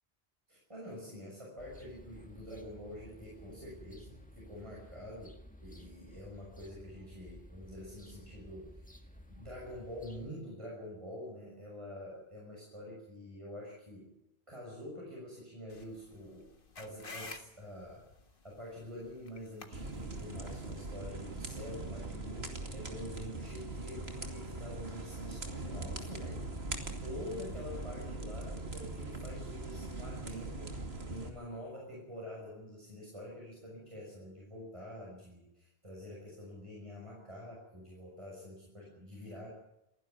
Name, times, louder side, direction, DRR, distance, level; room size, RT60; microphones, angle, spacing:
voice 1, 0.5-8.9 9.3-14.1 14.5-16.5 16.8-18.1 18.4-26.4 26.7-30.8 31.1-39.5, left 1 dB, 30° right, -4 dB, 6.4 m, -46 dB
sound 1, 1.6-10.3, equal, 10° left, 1.9 m, -54 dB
sound 2, 15.7-20.8, left 3 dB, 55° left, 1.8 m, -51 dB
sound 3, 19.7-31.3, right 2 dB, 75° right, 2.8 m, -41 dB
28.5 x 11.0 x 9.4 m, 0.85 s
omnidirectional pair, 1.1 m